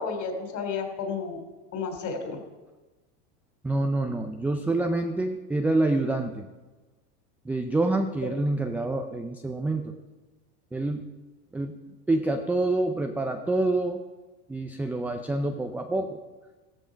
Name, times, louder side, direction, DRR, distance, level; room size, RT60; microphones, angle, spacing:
voice 1, 0.0-2.4, left 5 dB, 35° left, 4 dB, 3.4 m, -32 dB
voice 2, 3.6-6.5 7.5-9.9 10.7-11.1 11.5-11.8 12.1-14.0 14.5-16.2, right 2 dB, 5° right, 4 dB, 0.3 m, -27 dB
14.5 x 13.5 x 5.1 m, 1.2 s
supercardioid pair, 115°, 48 cm